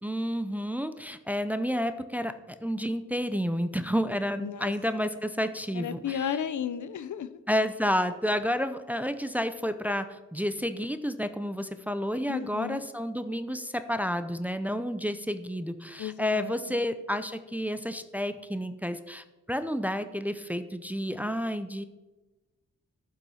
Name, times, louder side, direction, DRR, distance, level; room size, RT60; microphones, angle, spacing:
voice 1, 0.0-2.3 2.6-6.3 7.5-21.8, equal, 5° right, 10 dB, 0.5 m, -30 dB
voice 2, 4.4-4.7 5.7-7.4 12.3-12.8 16.0-16.8, left 8 dB, 75° left, 13 dB, 0.7 m, -34 dB
12.0 x 7.3 x 5.6 m, 1.1 s
wide cardioid pair, 150°, 30 cm